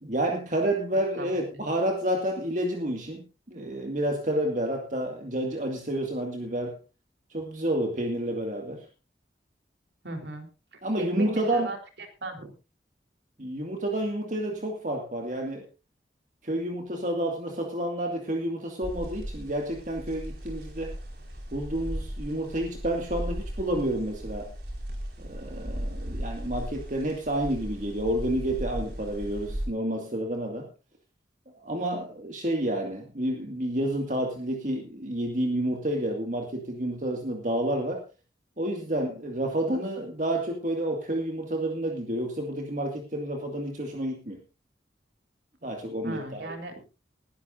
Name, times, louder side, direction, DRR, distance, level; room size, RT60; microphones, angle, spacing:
voice 1, 0.0-6.8 7.3-8.9 10.8-11.7 13.4-15.7 16.4-20.9 21.5-24.5 25.2-30.7 31.6-38.0 38.6-44.4 45.6-46.5, right 1 dB, 45° right, 2 dB, 2.0 m, -30 dB
voice 2, 10.0-10.5 10.7-12.5 46.0-46.7, right 2 dB, 90° right, 5 dB, 3.6 m, -37 dB
sound 1, 18.8-29.7, equal, 70° right, 5.0 m, -37 dB
20.5 x 12.5 x 2.6 m, 0.29 s
head